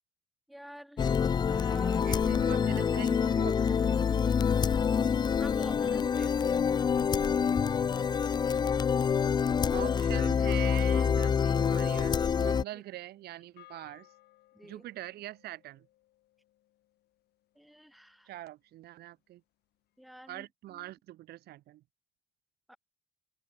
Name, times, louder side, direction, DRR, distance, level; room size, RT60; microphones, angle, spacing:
voice 1, 0.5-2.5 5.4-6.5 12.7-12.8 14.5-14.8 17.5-18.3 20.0-20.9 22.7-22.8, equal, ahead, 1.7 m, -49 dB
sound 1, 1.0-12.6, left 7 dB, 25° left, 0.4 m, -27 dB
voice 2, 2.0-4.2 9.7-14.1 14.6-15.9 18.3-19.4 20.3-21.8, right 15 dB, 70° right, 1.1 m, -43 dB
sound 2, 9.6-18.1, left 15 dB, 75° left, 2.7 m, -62 dB
cardioid pair, 110°, 17 cm